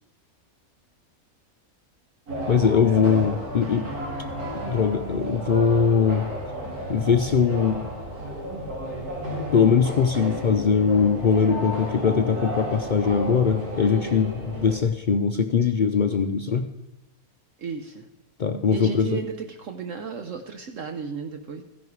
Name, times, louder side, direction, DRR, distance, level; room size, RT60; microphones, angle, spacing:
sound 1, 2.3-14.8, equal, 80° right, 3.0 m, -33 dB
voice 1, 2.5-3.9 4.5-6.3 6.9-7.8 9.5-16.7 18.4-19.2, left 6 dB, 80° left, 7 dB, 0.4 m, -21 dB
voice 2, 17.6-18.1 18.7-21.6, right 5 dB, 60° right, 6 dB, 1.2 m, -34 dB
14.5 x 10.5 x 4.7 m, 0.93 s
omnidirectional pair, 1.6 m